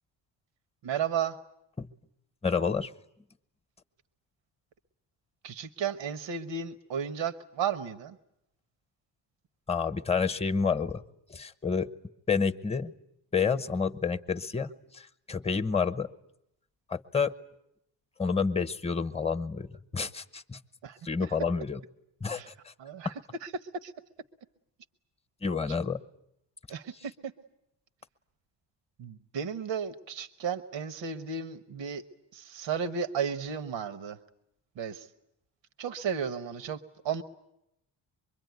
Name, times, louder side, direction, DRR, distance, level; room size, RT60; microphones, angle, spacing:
voice 1, 0.8-1.4 5.4-8.2 20.8-21.0 22.3-22.5 22.8-23.1 23.4-23.5 23.8-23.9 26.7-27.3 29.0-32.0 32.3-34.2 34.8-35.1 35.8-37.2, right 7 dB, 85° right, 11 dB, 1.3 m, -34 dB
voice 2, 2.4-2.9 9.7-11.0 11.3-11.9 12.3-12.9 13.3-16.1 16.9-17.3 18.2-20.6 21.0-21.8 22.2-22.7 25.4-26.0, left 5 dB, 15° left, 11 dB, 0.9 m, -29 dB
25.0 x 22.5 x 9.4 m, 0.80 s
cardioid pair, 110°, 43 cm